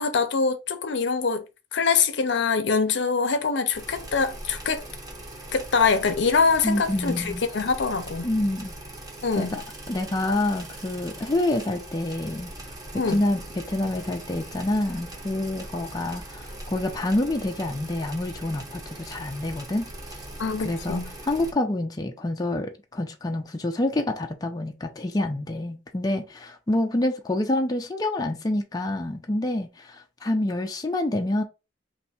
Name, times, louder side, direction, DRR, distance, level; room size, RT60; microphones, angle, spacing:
voice 1, 0.0-1.4 1.7-4.8 5.5-8.3 9.2-9.6 12.9-13.2 20.4-21.1, left 5 dB, 65° left, 0.6 m, -24 dB
sound 1, 3.7-21.5, right 1 dB, 20° right, 0.9 m, -41 dB
voice 2, 6.6-7.5 8.2-8.7 9.4-20.2 20.6-31.4, left 1 dB, 20° left, 0.4 m, -27 dB
3.3 x 2.6 x 4.2 m
head